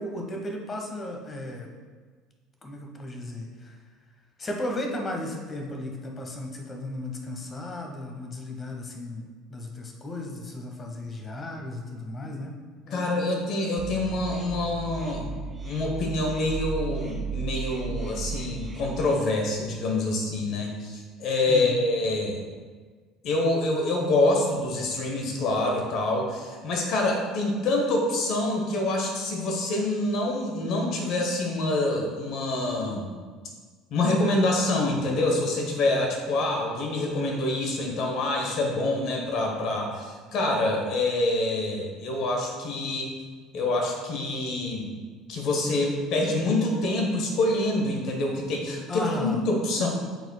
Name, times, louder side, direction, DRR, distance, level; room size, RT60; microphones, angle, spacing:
voice 1, 0.0-1.7 2.6-3.8 4.4-9.2 9.5-12.6 12.8-13.3 21.5-21.7 48.9-49.4, left 1 dB, 30° left, 2 dB, 1.2 m, -35 dB
voice 2, 12.9-15.3 15.6-22.4 23.2-33.1 33.9-43.1 43.5-44.9 45.3-49.9, left 2 dB, 50° left, 1 dB, 1.1 m, -26 dB
sound 1, 13.8-19.1, right 6 dB, 20° right, 1.8 m, -35 dB
10.5 x 4.4 x 2.3 m, 1.5 s
figure-of-eight pair, 60°, 0 cm